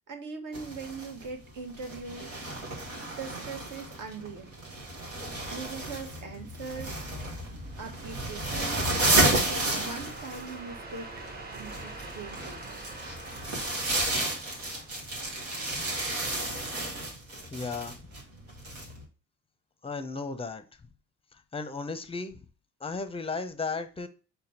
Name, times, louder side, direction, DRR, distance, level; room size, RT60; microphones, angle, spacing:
voice 1, 0.1-2.4 3.2-4.5 5.5-7.1 7.8-9.0 9.4-11.1 11.5-12.8, right 4 dB, 55° right, 6 dB, 1.1 m, -41 dB
sound 1, 0.5-19.0, right 1 dB, 85° right, 1.1 m, -32 dB
sound 2, 7.2-15.5, right 2 dB, 25° right, 0.9 m, -45 dB
voice 2, 17.5-18.0 19.8-20.6 21.5-22.4 22.8-24.1, left 4 dB, 15° left, 10 dB, 0.6 m, -34 dB
5.0 x 2.3 x 4.2 m, 0.36 s
hypercardioid pair, 45°, 39 cm